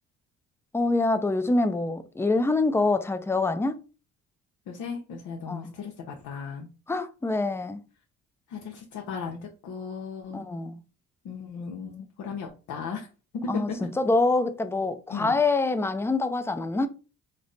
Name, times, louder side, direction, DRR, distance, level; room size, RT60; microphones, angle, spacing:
voice 1, 0.7-3.7 5.5-5.7 6.9-7.8 10.3-10.8 13.5-13.7 14.0-16.9, left 3 dB, 10° left, 0.4 m, -25 dB
voice 2, 4.7-6.7 8.5-10.4 11.2-13.1 13.4-13.9 15.1-15.3, left 5 dB, 80° left, 0.8 m, -36 dB
3.2 x 2.0 x 3.9 m
cardioid pair, 90°, 30 cm